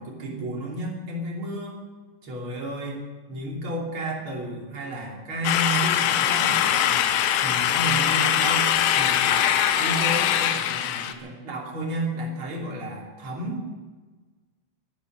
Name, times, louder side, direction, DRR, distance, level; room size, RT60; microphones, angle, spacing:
voice 1, 0.0-1.8 2.2-7.0 7.4-9.5 9.8-13.7, right 1 dB, 35° right, -2 dB, 3.5 m, -32 dB
sound 1, 5.4-11.1, left 10 dB, 75° left, 2.7 m, -22 dB
20.5 x 11.0 x 6.3 m, 1.3 s
omnidirectional pair, 4.9 m